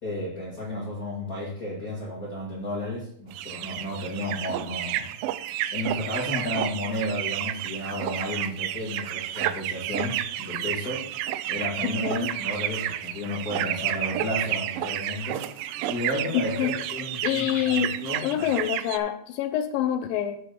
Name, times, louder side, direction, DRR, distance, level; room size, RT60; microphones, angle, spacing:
voice 1, 0.0-5.1 5.7-11.0 11.5-15.5 15.9-18.4, left 1 dB, 30° left, -6 dB, 2.1 m, -32 dB
sound 1, 3.3-19.0, right 13 dB, 85° right, 1.9 m, -31 dB
voice 2, 16.3-16.7 17.2-17.9 18.2-20.4, left 10 dB, 80° left, 9 dB, 2.2 m, -26 dB
7.9 x 5.7 x 6.7 m, 0.66 s
omnidirectional pair, 4.4 m